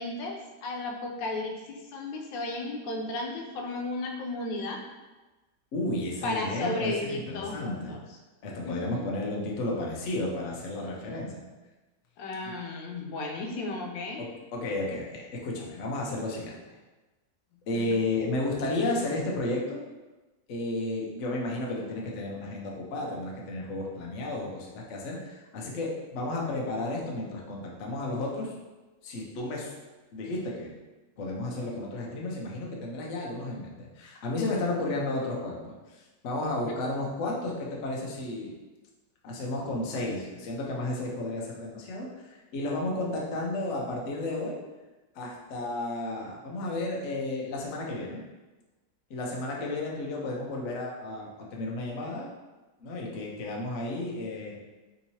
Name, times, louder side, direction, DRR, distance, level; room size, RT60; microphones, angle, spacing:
voice 1, 0.0-4.8 6.2-8.0 8.6-9.1 12.2-14.2 17.7-17.8 36.7-36.8, left 2 dB, 85° left, 1 dB, 1.3 m, -34 dB
voice 2, 5.7-8.0 8.4-11.5 12.5-12.6 14.2-16.5 17.7-19.8 20.5-28.5 29.0-29.7 30.1-30.7 31.2-38.5 39.2-44.6 45.1-48.2 49.1-52.3 52.8-54.6, left 2 dB, 65° left, -2 dB, 0.7 m, -33 dB
3.5 x 2.9 x 2.8 m, 1.2 s
omnidirectional pair, 2.0 m